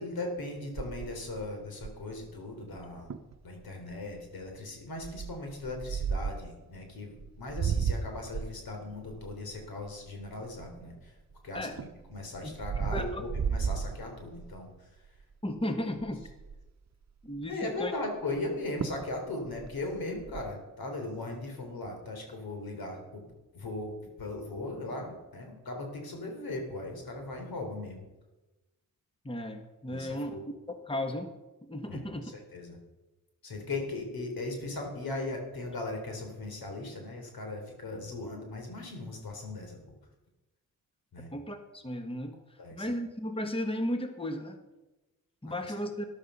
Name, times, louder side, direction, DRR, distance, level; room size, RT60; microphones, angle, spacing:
voice 1, 0.0-3.1 3.4-11.2 11.4-15.2 17.5-23.2 23.5-28.0 29.9-30.4 31.9-32.8 33.4-39.9 41.1-41.3 42.6-42.9 45.4-45.7, left 2 dB, 75° left, 3 dB, 3.7 m, -38 dB
sound 1, 0.8-2.2 2.8-2.9 3.1-3.4 3.9-4.2 5.0-6.5 7.2-11.1 11.6-14.6 15.1-15.3 15.6-15.7 16.0-16.7 18.4-18.5 18.8-19.1 19.5-20.4, right 6 dB, 45° right, 1.0 m, -34 dB
voice 2, 12.9-13.2 15.4-16.3 17.2-17.9 29.2-30.3 30.7-31.3 31.7-32.3 41.3-42.4 42.7-44.6 45.4-46.1, left 1 dB, 15° left, 6 dB, 1.6 m, -34 dB
13.0 x 11.5 x 5.6 m, 1.1 s
supercardioid pair, 50°, 36 cm